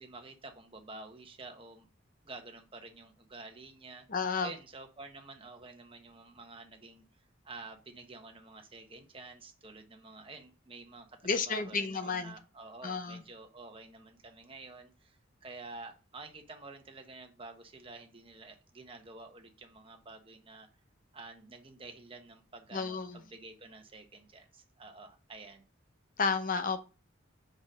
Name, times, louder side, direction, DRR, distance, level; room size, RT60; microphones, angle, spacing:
voice 1, 0.0-1.9 2.2-4.1 4.4-20.7 21.1-25.6, right 3 dB, 25° right, 1.2 m, -49 dB
voice 2, 4.1-4.5 11.2-12.4 12.8-13.2 22.7-23.2 26.2-26.8, left 4 dB, 45° left, 0.8 m, -32 dB
5.2 x 5.1 x 6.3 m
head